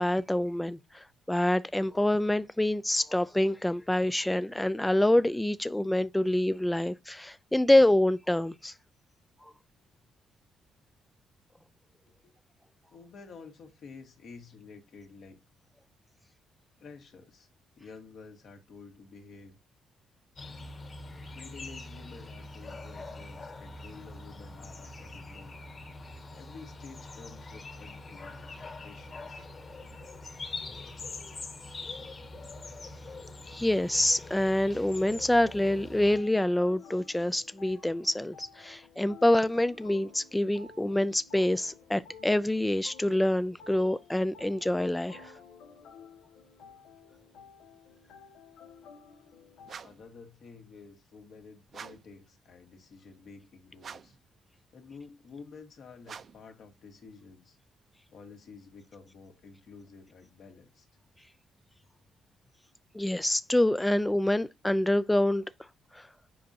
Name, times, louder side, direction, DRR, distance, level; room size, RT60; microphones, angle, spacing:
voice 1, 0.0-8.7 9.4-9.5 33.5-45.3 62.9-65.4 65.9-66.1, left 1 dB, 10° left, 0.4 m, -26 dB
voice 2, 12.9-15.4 16.8-17.5 17.8-19.5 21.3-25.6 26.3-29.5 49.8-54.2 54.7-57.6 58.1-60.9, left 4 dB, 65° left, 2.0 m, -50 dB
sound 1, 20.4-36.2, left 2 dB, 40° left, 1.9 m, -44 dB
sound 2, 34.9-49.7, left 5 dB, 90° left, 1.1 m, -53 dB
sound 3, 49.7-50.1 51.7-52.2 53.8-54.3 56.0-56.5, right 6 dB, 50° right, 0.6 m, -46 dB
7.7 x 5.2 x 2.8 m
cardioid pair, 90°, 0 cm